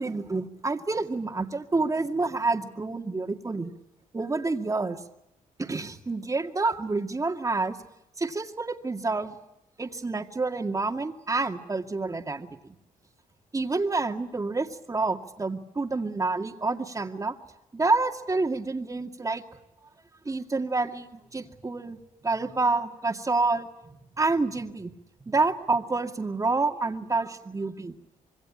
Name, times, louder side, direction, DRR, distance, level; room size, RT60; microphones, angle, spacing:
voice 1, 0.0-3.7 4.1-5.0 5.6-7.8 8.2-9.4 9.8-12.8 13.5-17.4 17.7-19.4 20.3-22.0 22.2-24.9 25.2-27.9, right 3 dB, 25° right, 6 dB, 2.3 m, -28 dB
26.5 x 22.0 x 8.8 m, 0.85 s
cardioid pair, 90°, 14 cm